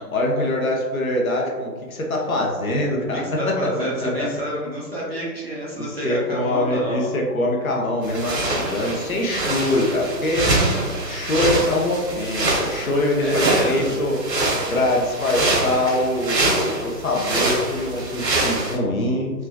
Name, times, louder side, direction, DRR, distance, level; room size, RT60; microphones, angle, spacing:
voice 1, 0.1-4.3 5.7-10.5 11.1-14.2 14.7-19.3, left 1 dB, 55° left, -1 dB, 0.7 m, -23 dB
voice 2, 3.1-7.1 10.4-10.7 13.2-13.9, right 1 dB, 40° right, -6 dB, 0.5 m, -28 dB
sound 1, 8.0-18.8, right 2 dB, 80° right, 1.1 m, -24 dB
3.3 x 2.3 x 2.3 m, 1.5 s
hypercardioid pair, 170°, 50 cm